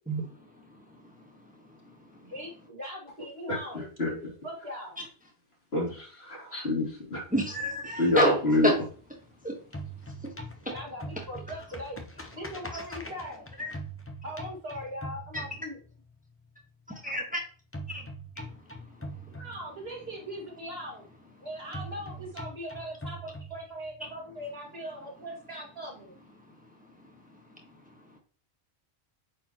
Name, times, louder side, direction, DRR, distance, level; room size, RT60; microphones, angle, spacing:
voice 1, 2.2-5.0 10.7-13.4 14.2-15.8 19.4-21.1 21.4-26.1, equal, 65° right, 2.3 m, -40 dB
voice 2, 3.5-4.1 5.7-7.2 8.0-8.7, left 1 dB, 70° left, 3.3 m, -27 dB
sound 1, 7.3-9.3 9.6-16.1 17.7-20.1 21.7-24.1, right 1 dB, 15° left, 0.9 m, -42 dB
voice 3, 7.3-8.3 8.6-8.7 9.4-9.6 10.2-10.3 10.6-10.7 13.6-13.7 16.9-17.4 17.9-18.0, equal, 10° right, 1.3 m, -27 dB
8.6 x 4.3 x 3.0 m
omnidirectional pair, 1.1 m